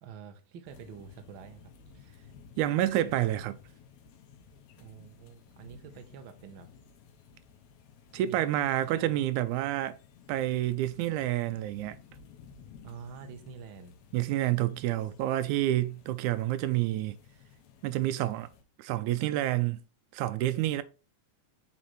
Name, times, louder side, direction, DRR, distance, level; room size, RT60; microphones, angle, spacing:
voice 1, 0.0-1.7 4.8-6.7 8.2-8.5 8.8-9.2 12.8-13.9, right 7 dB, 60° right, 1.3 m, -47 dB
sound 1, 0.7-18.6, left 6 dB, 75° left, 2.1 m, -55 dB
voice 2, 2.6-3.5 8.1-10.0 10.3-12.0 14.1-17.2 17.8-18.5 18.8-19.8 20.1-20.8, right 14 dB, 90° right, 2.0 m, -28 dB
7.4 x 4.1 x 3.1 m
omnidirectional pair, 3.3 m